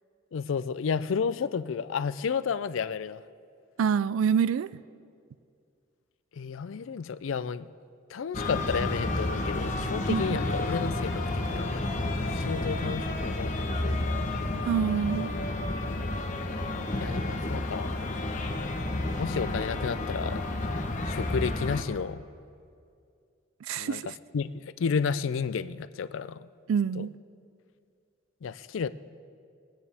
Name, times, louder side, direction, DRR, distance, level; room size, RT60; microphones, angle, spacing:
voice 1, 0.3-3.2 6.3-7.7 8.1-11.9 12.3-14.4 17.0-18.1 19.2-20.4 21.1-22.2 23.8-24.0 24.3-26.5 26.9-27.1 28.4-28.9, left 6 dB, 75° left, 0.4 m, -32 dB
voice 2, 3.8-4.7 10.1-10.4 14.7-15.3 23.7-24.1 26.7-27.1, right 7 dB, 90° right, 0.3 m, -26 dB
sound 1, 8.3-21.8, left 2 dB, 40° left, 1.0 m, -31 dB
21.5 x 9.6 x 3.5 m
head